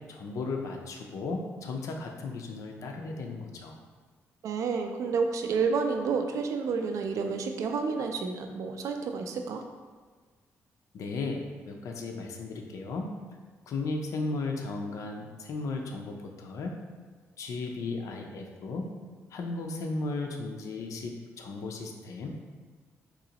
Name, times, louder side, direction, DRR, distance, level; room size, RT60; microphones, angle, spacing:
voice 1, 0.1-3.8 10.9-13.1 13.7-16.8 17.4-18.9 19.3-22.3, left 3 dB, 70° left, 2 dB, 0.5 m, -35 dB
voice 2, 4.4-9.6, right 5 dB, 75° right, 5 dB, 0.4 m, -30 dB
3.8 x 2.9 x 2.8 m, 1.5 s
cardioid pair, 115°, 6 cm